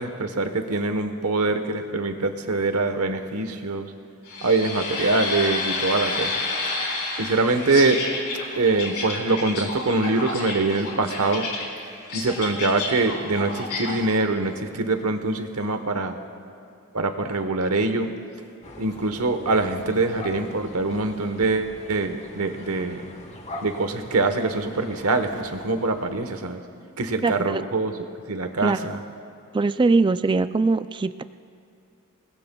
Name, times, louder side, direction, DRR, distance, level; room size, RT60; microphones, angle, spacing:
voice 1, 0.0-3.9 4.4-6.4 7.2-8.0 8.6-11.5 12.1-16.2 16.9-18.1 18.8-23.0 23.6-26.6 27.0-27.9 28.3-29.0, right 3 dB, 80° right, 7 dB, 1.1 m, -24 dB
sound 1, 4.2-14.0, left 3 dB, 85° left, 4.0 m, -30 dB
sound 2, 18.6-26.4, left 2 dB, 30° left, 1.2 m, -42 dB
voice 2, 27.2-27.6 28.6-28.8 29.5-31.2, right 3 dB, 20° right, 12 dB, 0.3 m, -21 dB
27.5 x 19.5 x 2.3 m, 2.6 s
head